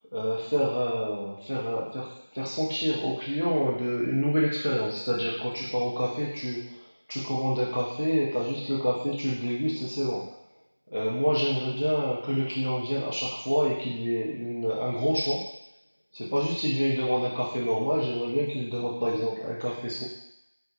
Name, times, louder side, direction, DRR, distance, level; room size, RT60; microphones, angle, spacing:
voice 1, 0.1-10.2 10.9-15.4 16.1-20.0, equal, 35° left, -6 dB, 0.5 m, -28 dB
4.6 x 2.2 x 2.5 m, 0.86 s
figure-of-eight pair, 180°, 0 cm